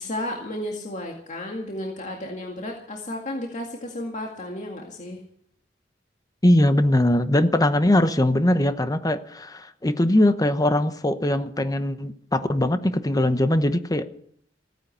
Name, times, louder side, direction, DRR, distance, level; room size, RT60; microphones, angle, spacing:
voice 1, 0.0-5.2, left 1 dB, 40° left, 2.1 m, -33 dB
voice 2, 6.4-14.1, left 1 dB, 20° left, 0.9 m, -21 dB
16.0 x 9.9 x 8.0 m
head